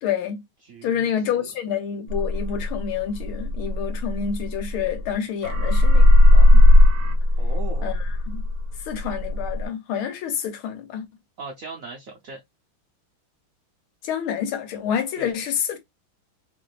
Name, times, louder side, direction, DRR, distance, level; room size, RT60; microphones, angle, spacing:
voice 1, 0.0-0.4 0.8-6.6 7.8-8.4 8.8-11.0 14.0-15.8, left 8 dB, 85° left, 1.8 m, -28 dB
voice 2, 0.6-1.1 1.4-1.5 7.4-7.9 11.4-12.4 15.2-15.3, right 4 dB, 75° right, 0.7 m, -38 dB
sound 1, 2.1-5.1 5.4-9.7, left 1 dB, 55° right, 1.1 m, -16 dB
3.6 x 3.4 x 2.3 m
omnidirectional pair, 2.3 m